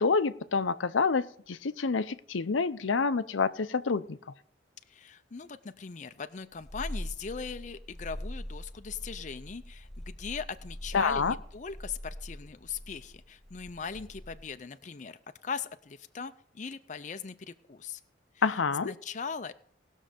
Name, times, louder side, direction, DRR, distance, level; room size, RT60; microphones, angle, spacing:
voice 1, 0.0-4.2 10.9-11.3 18.4-18.9, left 4 dB, 85° left, 12 dB, 0.6 m, -27 dB
voice 2, 4.9-18.0 18.5-18.6 18.8-19.6, left 6 dB, 40° left, 10 dB, 0.5 m, -40 dB
Purr, 6.5-14.6, equal, ahead, 0.7 m, -43 dB
18.5 x 6.4 x 5.1 m, 0.63 s
head